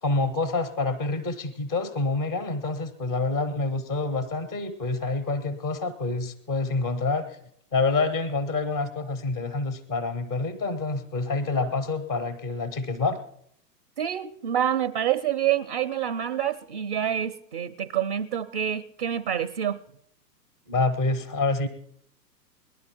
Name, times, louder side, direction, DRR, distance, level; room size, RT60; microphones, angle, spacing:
voice 1, 0.0-7.4 7.7-13.2 20.7-21.7, left 3 dB, 10° left, 12 dB, 0.5 m, -27 dB
voice 2, 14.0-19.8, right 10 dB, 35° right, 12 dB, 0.5 m, -27 dB
19.0 x 11.0 x 4.4 m, 0.70 s
figure-of-eight pair, 120°, 50 cm